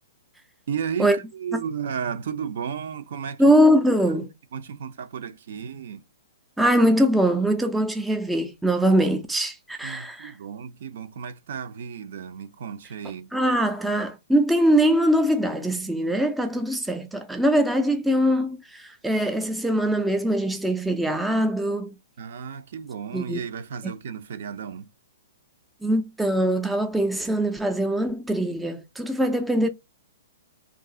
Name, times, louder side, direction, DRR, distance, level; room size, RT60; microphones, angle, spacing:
voice 1, 0.7-3.5 4.5-6.0 9.8-13.3 22.2-24.9, right 7 dB, 65° right, 0.5 m, -33 dB
voice 2, 3.4-4.3 6.6-10.3 13.3-22.0 23.1-23.4 23.8-23.9 25.8-29.7, equal, 5° right, 0.3 m, -22 dB
2.4 x 2.3 x 3.7 m
hypercardioid pair, 145°, 0 cm